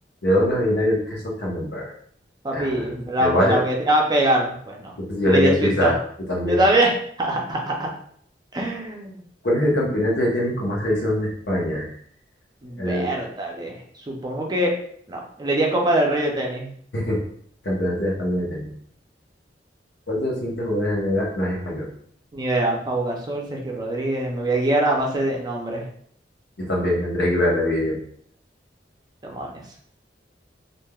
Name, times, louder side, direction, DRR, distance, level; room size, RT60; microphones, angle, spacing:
voice 1, 0.2-1.9 2.5-3.6 5.0-5.9 6.3-6.6 9.4-11.9 12.8-13.0 16.9-17.2 17.6-18.7 20.1-21.9 26.6-28.0, left 1 dB, 70° left, -3 dB, 1.0 m, -23 dB
voice 2, 2.4-4.9 5.2-5.9 6.4-6.9 7.2-7.9 8.5-9.2 12.6-13.8 14.1-14.7 15.1-16.7 22.3-25.8 29.2-29.6, right 1 dB, 25° right, 0 dB, 0.5 m, -23 dB
3.3 x 2.5 x 2.3 m, 0.62 s
head